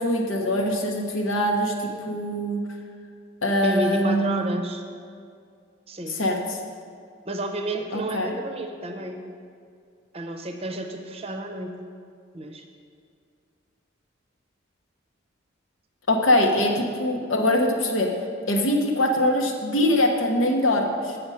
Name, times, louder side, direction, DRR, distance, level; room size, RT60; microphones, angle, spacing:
voice 1, 0.0-2.6 3.4-4.5 6.1-6.6 7.9-8.3 16.1-18.1 18.5-21.2, left 1 dB, 75° left, 2 dB, 1.1 m, -23 dB
voice 2, 3.6-4.8 5.9-6.2 7.2-9.2 10.1-11.8 12.3-12.6, right 1 dB, 30° right, 5 dB, 0.7 m, -31 dB
8.7 x 6.9 x 5.6 m, 2.3 s
head